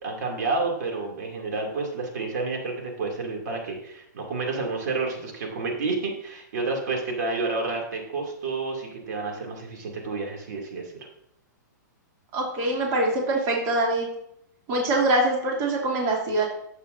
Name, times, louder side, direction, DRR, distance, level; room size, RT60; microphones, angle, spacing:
voice 1, 0.0-11.1, right 3 dB, 65° right, 1 dB, 2.6 m, -30 dB
voice 2, 12.3-14.1 14.7-16.5, right 2 dB, 35° right, -2 dB, 2.5 m, -24 dB
11.0 x 8.0 x 2.6 m, 0.74 s
hypercardioid pair, 140°, 10 cm